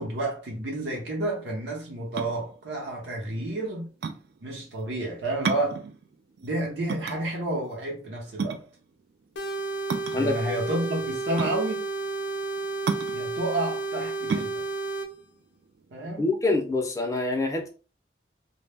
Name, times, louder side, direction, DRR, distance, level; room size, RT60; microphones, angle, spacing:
voice 1, 0.0-3.9 4.4-5.8 6.4-8.7 10.1-11.9 13.1-14.7 15.9-16.3, right 2 dB, 85° right, 0.7 m, -30 dB
sound 1, 2.0-16.4, right 5 dB, 60° right, 0.3 m, -34 dB
sound 2, 9.4-15.1, right 3 dB, 75° left, 0.5 m, -32 dB
voice 2, 16.2-17.7, left 2 dB, 20° left, 0.4 m, -25 dB
2.1 x 2.0 x 3.3 m
head